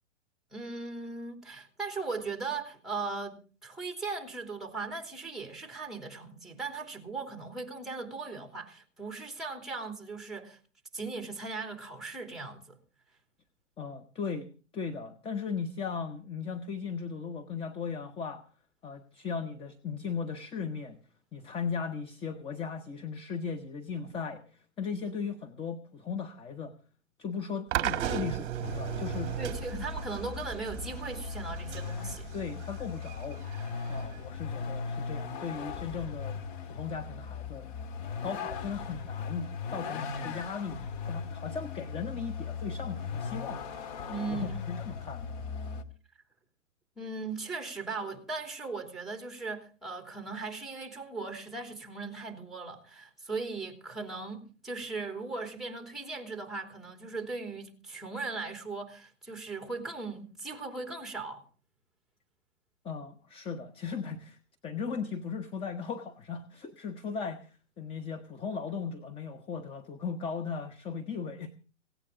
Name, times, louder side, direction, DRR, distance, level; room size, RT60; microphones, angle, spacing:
voice 1, 0.5-10.6 10.9-12.8 29.4-32.3 44.1-44.6 47.0-61.4, right 3 dB, ahead, 3.0 m, -38 dB
voice 2, 13.8-14.5 14.7-18.4 18.8-21.0 21.3-26.7 27.2-29.3 29.7-29.9 32.3-33.4 33.9-36.4 36.7-37.7 38.0-40.8 41.1-43.6 44.1-45.3 62.8-71.5, left 5 dB, 15° left, 1.0 m, -37 dB
sound 1, 27.7-34.8, right 11 dB, 35° right, 1.7 m, -36 dB
Vehicle, 28.6-45.8, left 5 dB, 45° left, 2.1 m, -38 dB
17.5 x 17.5 x 3.8 m
hypercardioid pair, 130°, 37 cm